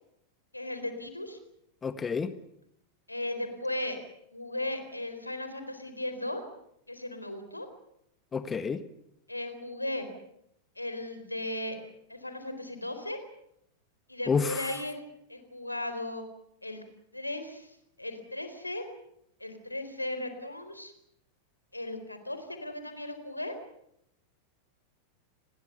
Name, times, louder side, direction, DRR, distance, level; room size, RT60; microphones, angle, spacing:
voice 1, 0.5-1.4 3.1-4.0 4.3-6.4 6.9-7.7 9.3-10.1 10.8-11.8 12.1-13.2 14.1-15.0 15.3-16.3 16.6-16.8 17.1-18.8 19.4-20.9 21.7-23.6, left 1 dB, 85° left, 8 dB, 4.1 m, -36 dB
voice 2, 1.8-2.3 8.3-8.8 14.3-14.7, left 5 dB, 20° left, 12 dB, 1.4 m, -29 dB
30.0 x 21.5 x 6.8 m, 0.77 s
figure-of-eight pair, 90°, 0 cm